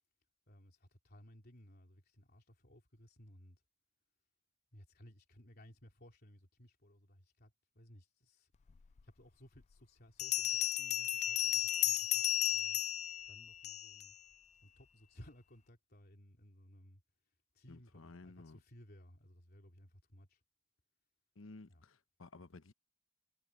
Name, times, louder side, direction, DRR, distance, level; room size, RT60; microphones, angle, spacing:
voice 1, 0.5-3.6 4.7-8.5 9.0-12.8 13.3-14.2 14.6-17.0 17.5-20.4 21.7-21.8, equal, 50° left, 3.1 m, -60 dB
Bell, 9.0-9.1 10.2-14.1, left 13 dB, 35° left, 0.3 m, -34 dB
voice 2, 17.7-18.6 21.4-22.7, left 3 dB, 75° left, 1.0 m, -54 dB
head